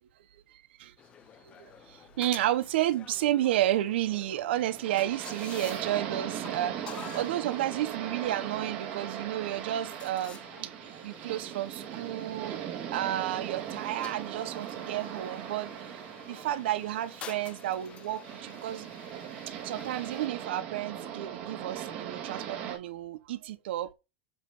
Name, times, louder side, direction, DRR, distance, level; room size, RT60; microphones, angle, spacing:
sound 1, 1.0-20.3, left 8 dB, 15° left, 0.5 m, -50 dB
voice 1, 1.4-18.9 19.6-23.9, right 13 dB, 65° right, 0.8 m, -32 dB
sound 2, 4.5-22.8, right 9 dB, 30° right, 1.8 m, -39 dB
8.1 x 3.0 x 5.2 m
supercardioid pair, 175°, 6 cm